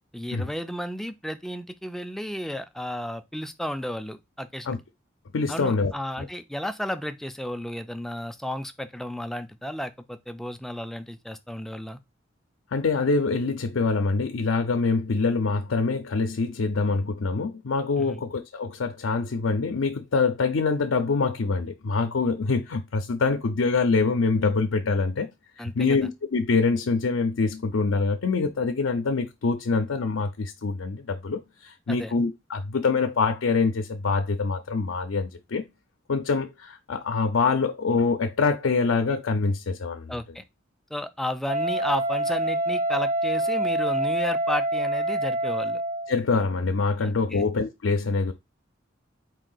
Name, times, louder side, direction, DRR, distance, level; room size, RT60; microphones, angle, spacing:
voice 1, 0.1-4.8 5.5-12.0 18.0-18.2 25.6-26.0 31.9-32.1 40.1-40.4 40.9-45.8 47.0-47.5, equal, ahead, 0.3 m, -33 dB
voice 2, 5.3-5.9 6.2-6.3 12.7-25.3 25.6-35.6 36.1-40.1 46.1-48.3, left 4 dB, 85° left, 0.5 m, -25 dB
Wind instrument woodwind instrument, 41.5-46.2, right 1 dB, 45° right, 0.8 m, -26 dB
4.4 x 2.7 x 3.8 m
head